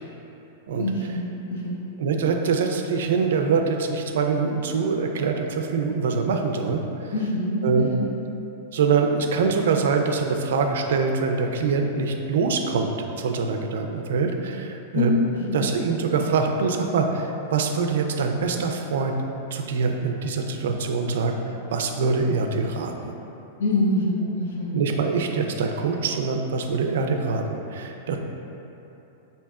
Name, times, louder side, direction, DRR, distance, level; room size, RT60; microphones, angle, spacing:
voice 1, 0.8-1.8 7.1-8.1 14.9-15.6 23.6-24.8, left 2 dB, 85° left, -4 dB, 0.8 m, -25 dB
voice 2, 2.0-7.1 7.6-7.9 8.7-12.9 13.2-15.1 15.5-19.1 19.5-21.4 21.7-23.1 24.7-28.2, right 5 dB, 75° right, 4 dB, 0.3 m, -24 dB
5.3 x 2.7 x 2.3 m, 3.0 s
supercardioid pair, 170°, 0 cm